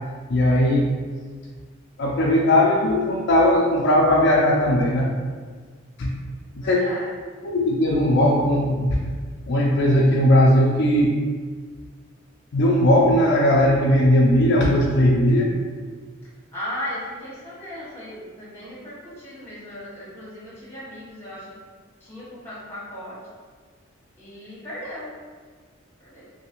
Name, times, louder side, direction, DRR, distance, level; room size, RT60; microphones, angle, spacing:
voice 1, 0.3-0.9 2.0-5.1 6.0-6.1 6.5-6.8 7.4-9.1 9.5-11.2 12.5-15.5, left 1 dB, 60° left, -3 dB, 0.4 m, -18 dB
voice 2, 6.6-7.1 16.5-21.6 22.0-23.2 24.2-25.1 26.0-26.2, equal, 10° left, -9 dB, 1.2 m, -36 dB
3.1 x 2.7 x 3.0 m, 1.5 s
head